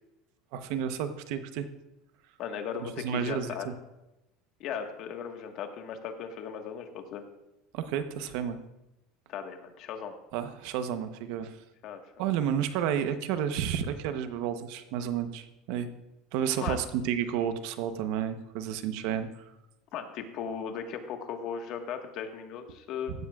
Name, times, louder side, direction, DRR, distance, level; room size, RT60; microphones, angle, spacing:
voice 1, 0.5-1.7 2.8-3.7 7.7-8.6 10.3-11.6 12.2-15.9 16.3-19.3, right 9 dB, 65° right, 9 dB, 0.9 m, -31 dB
voice 2, 2.4-3.7 4.6-7.2 9.3-10.1 11.8-12.0 16.6-16.8 19.9-23.1, left 7 dB, 50° left, 5 dB, 1.5 m, -37 dB
16.0 x 12.5 x 2.4 m, 0.94 s
supercardioid pair, 140°, 0 cm